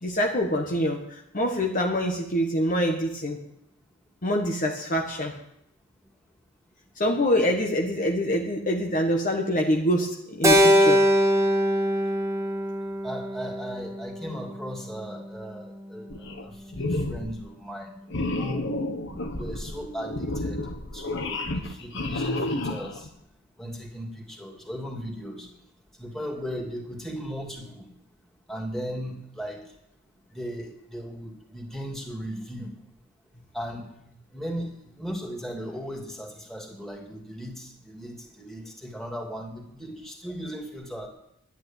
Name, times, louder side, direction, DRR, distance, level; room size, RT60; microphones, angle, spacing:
voice 1, 0.0-3.4 4.2-5.3 7.0-11.0, equal, 40° left, 1 dB, 1.4 m, -25 dB
Keyboard (musical), 10.4-14.8, equal, 15° right, 1.7 m, -22 dB
voice 2, 13.0-17.9 18.3-18.8 19.4-20.6 20.9-23.1 23.6-25.5 26.0-27.9 28.5-29.6 30.3-32.7 33.5-33.9 34.3-41.1, equal, ahead, 0 dB, 2.8 m, -37 dB
sound 1, 16.1-16.5 16.7-17.4 18.1-23.1, left 2 dB, 60° left, 1.4 m, -31 dB
11.0 x 10.0 x 9.2 m, 0.78 s
head